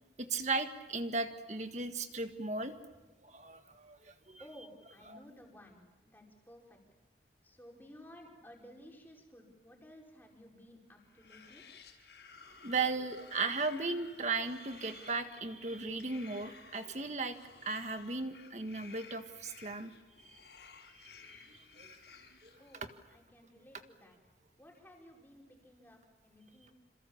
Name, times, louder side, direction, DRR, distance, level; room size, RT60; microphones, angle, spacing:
voice 1, 0.2-2.7 3.2-4.4 5.1-5.2 12.6-17.4 17.6-19.9 20.2-20.4 20.9-22.0 22.4-22.9, right 3 dB, 40° right, 7 dB, 1.7 m, -37 dB
voice 2, 4.4-6.8 7.4-11.6 22.6-22.8 23.1-24.2 24.6-26.7, equal, 10° left, -1 dB, 5.2 m, -56 dB
sound 1, 11.0-23.1, left 5 dB, 80° left, 6.1 m, -56 dB
27.5 x 27.5 x 7.3 m, 1.1 s
head